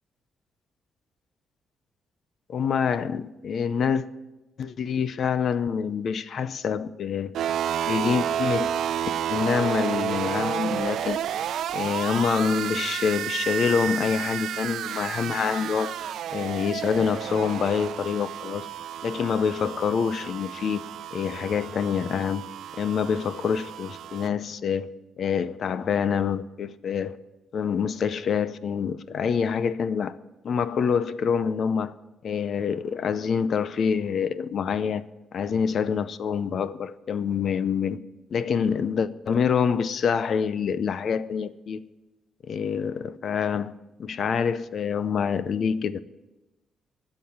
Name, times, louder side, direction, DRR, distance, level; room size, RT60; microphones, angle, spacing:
voice 1, 2.5-4.1 4.6-7.3 7.9-8.7 9.3-11.2 11.7-16.0 16.3-18.7 19.0-20.8 21.1-22.5 22.7-24.9 25.2-27.2 27.5-30.2 30.4-32.0 32.2-35.0 35.3-38.0 38.3-41.8 42.4-46.0, left 6 dB, 50° left, 0.6 m, -26 dB
sound 1, 7.3-24.3, right 9 dB, 70° right, 0.6 m, -31 dB
13.5 x 7.6 x 9.6 m
cardioid pair, 140°, 0 cm